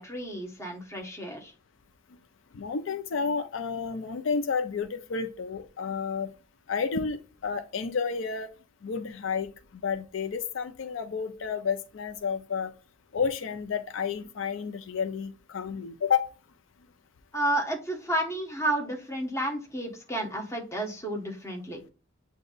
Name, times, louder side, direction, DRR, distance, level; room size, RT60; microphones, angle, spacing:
voice 1, 0.0-1.5 17.3-21.8, right 1 dB, 15° left, 0 dB, 1.1 m, -31 dB
voice 2, 2.5-6.3 6.7-7.2 7.4-8.5 8.8-9.5 9.8-12.7 13.1-16.3, left 6 dB, 85° left, 9 dB, 0.5 m, -30 dB
7.8 x 2.7 x 2.4 m, 0.33 s
head